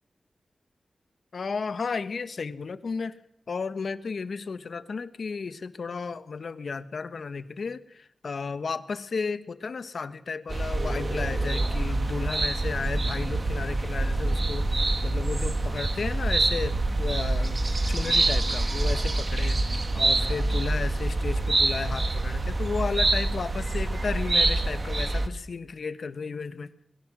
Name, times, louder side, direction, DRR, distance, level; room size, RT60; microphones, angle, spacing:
voice 1, 1.3-3.2 3.5-14.7 15.0-17.6 17.9-26.7, left 4 dB, 70° left, 1.3 m, -33 dB
sound 1, 10.5-25.3, right 2 dB, 40° right, 2.0 m, -26 dB
27.5 x 22.0 x 6.3 m
wide cardioid pair, 80°, 0 cm